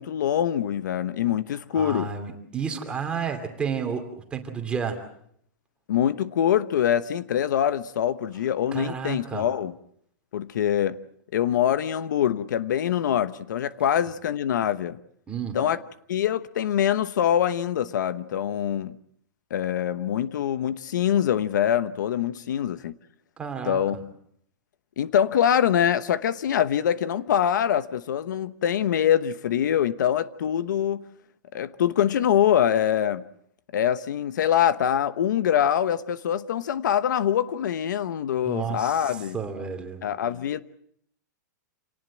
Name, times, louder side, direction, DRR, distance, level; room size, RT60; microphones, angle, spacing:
voice 1, 0.0-2.1 5.9-9.7 10.3-11.0 11.3-15.0 15.5-15.8 16.1-18.9 19.5-23.0 23.6-24.1 25.0-31.0 31.5-33.2 33.7-39.4 40.0-40.6, left 10 dB, 75° left, 1.0 m, -24 dB
voice 2, 1.7-5.0 8.7-9.5 15.3-15.6 23.4-23.8 38.4-40.1, right 6 dB, 10° right, 2.7 m, -31 dB
27.5 x 19.0 x 7.3 m
supercardioid pair, 170°, 10 cm